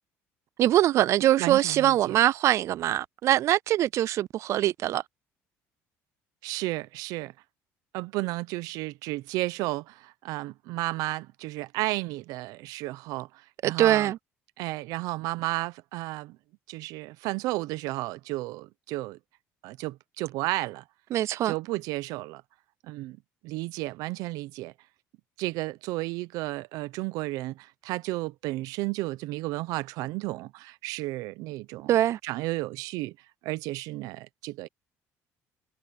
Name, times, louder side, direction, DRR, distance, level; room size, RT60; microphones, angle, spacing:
voice 1, 0.6-5.0 13.6-14.2 21.1-21.5 31.9-32.2, right 13 dB, 55° right, 0.3 m, -23 dB
voice 2, 1.4-2.2 6.4-7.3 7.9-13.3 13.6-14.1 14.6-16.4 16.7-19.2 19.6-20.8 21.4-22.4 22.8-23.2 23.4-24.7 25.4-31.9 32.2-33.2 33.4-34.7, right 19 dB, 80° right, 0.7 m, -33 dB
cardioid pair, 115°, 6 cm